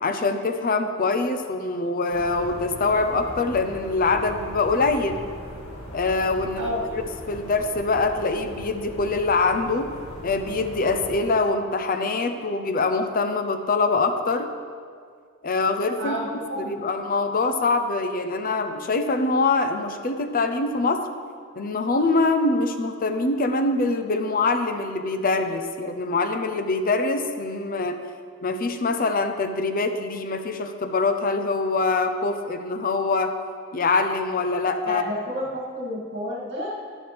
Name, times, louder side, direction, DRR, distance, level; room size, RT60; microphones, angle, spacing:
voice 1, 0.0-5.2 5.9-7.0 7.3-9.9 10.2-14.5 15.4-16.3 16.6-21.1 21.6-28.0 28.4-33.3 33.7-35.0, left 3 dB, 40° left, 7 dB, 0.6 m, -24 dB
sound 1, 2.1-11.2, equal, 75° left, 1.9 m, -39 dB
voice 2, 16.5-16.8 34.8-36.8, left 1 dB, 60° right, -3 dB, 2.3 m, -30 dB
11.5 x 11.5 x 3.4 m, 2.1 s
head